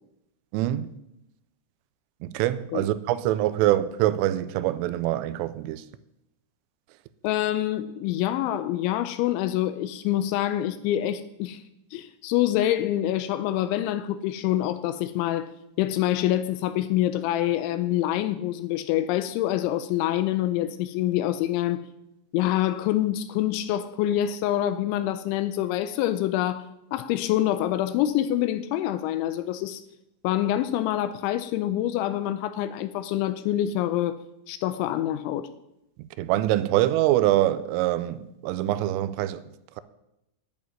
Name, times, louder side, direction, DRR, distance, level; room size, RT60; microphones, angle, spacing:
voice 1, 0.5-0.9 2.2-5.8 36.2-39.4, right 14 dB, 85° right, 3.1 m, -24 dB
voice 2, 7.2-11.6 11.9-15.5 15.8-21.9 22.3-29.8 30.2-34.2 34.5-35.5, left 13 dB, 85° left, 2.7 m, -26 dB
11.0 x 6.9 x 9.4 m
omnidirectional pair, 5.9 m